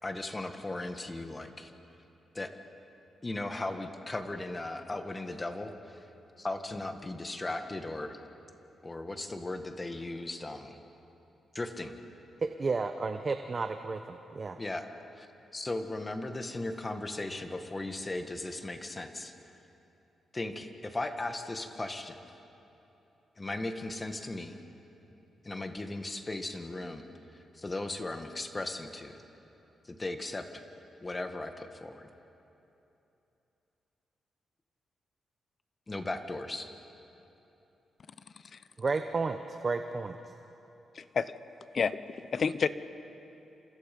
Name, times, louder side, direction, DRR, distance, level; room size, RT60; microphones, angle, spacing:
voice 1, 0.0-1.7 2.3-2.5 3.2-6.1 6.4-8.2 8.8-10.8 11.5-12.0 14.6-14.8 15.1-15.3 15.5-19.3 20.3-22.3 23.4-24.6 25.4-27.0 27.3-29.2 29.8-30.6 31.0-32.1 35.9-36.7, left 2 dB, 20° left, 6 dB, 1.7 m, -37 dB
voice 2, 12.4-14.6 38.8-40.3, right 4 dB, 35° right, 7 dB, 0.9 m, -32 dB
voice 3, 40.9-41.3 41.7-42.7, left 6 dB, 45° left, 14 dB, 0.8 m, -30 dB
29.0 x 27.5 x 5.4 m, 3.0 s
cardioid pair, 115°, 0 cm